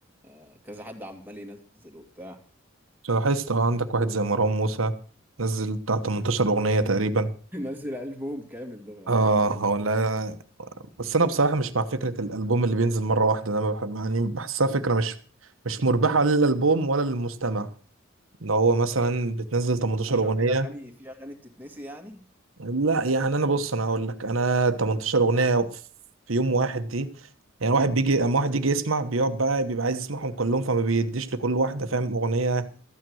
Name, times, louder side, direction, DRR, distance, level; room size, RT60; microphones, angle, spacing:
voice 1, 0.2-2.4 7.5-9.3 20.1-22.2, equal, 10° right, 2.3 m, -39 dB
voice 2, 3.0-4.9 5.4-7.3 9.1-10.7 11.0-15.2 15.6-17.7 18.4-20.7 22.6-25.7 26.3-27.1 27.6-32.6, right 3 dB, 80° right, 1.2 m, -24 dB
13.5 x 9.3 x 6.3 m
head